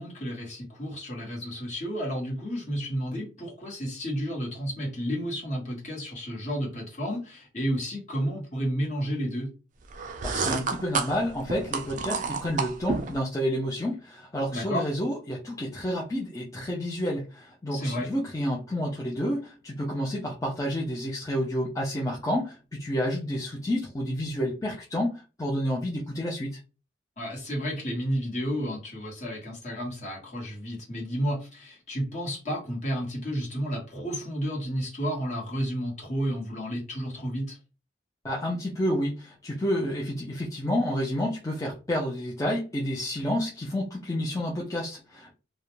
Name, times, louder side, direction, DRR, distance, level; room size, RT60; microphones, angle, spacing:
voice 1, 0.0-9.5 14.5-14.8 17.7-18.1 27.2-37.6, equal, 40° left, -2 dB, 1.1 m, -31 dB
sound 1, 9.9-13.2, right 4 dB, 40° right, 0.3 m, -30 dB
voice 2, 10.2-26.6 38.2-45.3, equal, 20° left, -4 dB, 0.5 m, -30 dB
2.4 x 2.1 x 3.0 m, 0.32 s
head